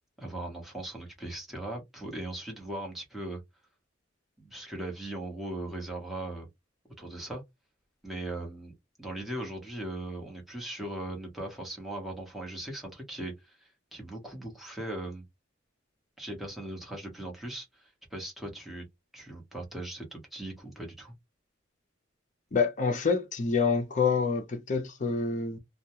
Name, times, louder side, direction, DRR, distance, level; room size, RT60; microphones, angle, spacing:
voice 1, 0.2-3.4 4.4-6.5 7.0-7.4 8.0-15.2 16.2-18.8 19.1-21.1, right 1 dB, ahead, 0.9 m, -39 dB
voice 2, 22.5-25.6, left 5 dB, 40° left, 0.5 m, -27 dB
2.2 x 2.1 x 2.8 m
head